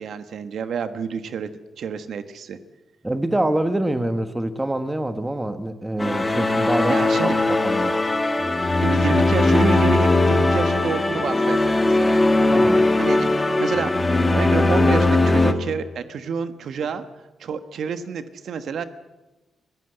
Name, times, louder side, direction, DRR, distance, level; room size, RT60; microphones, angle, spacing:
voice 1, 0.0-1.5 1.8-2.6 6.9-7.3 8.8-12.3 13.0-13.3 13.6-17.0 17.4-18.8, right 6 dB, 70° right, 1.3 m, -29 dB
voice 2, 3.0-8.0 12.5-12.9, right 1 dB, 10° right, 1.3 m, -25 dB
sound 1, 6.0-15.5, left 2 dB, 20° left, 1.8 m, -19 dB
25.0 x 15.5 x 8.0 m
cardioid pair, 105°, 0 cm